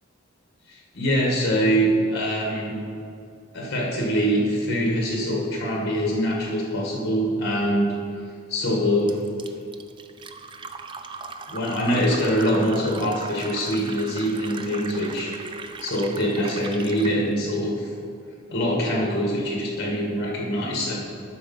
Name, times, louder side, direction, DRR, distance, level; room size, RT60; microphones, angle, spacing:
voice 1, 0.7-2.8 3.5-7.9 8.5-9.2 11.5-15.3 15.8-17.9 18.5-20.9, equal, 55° left, -2 dB, 1.5 m, -24 dB
Fill (with liquid), 9.1-17.2, right 4 dB, 25° right, 0.3 m, -39 dB
12.0 x 4.3 x 5.4 m, 2.5 s
head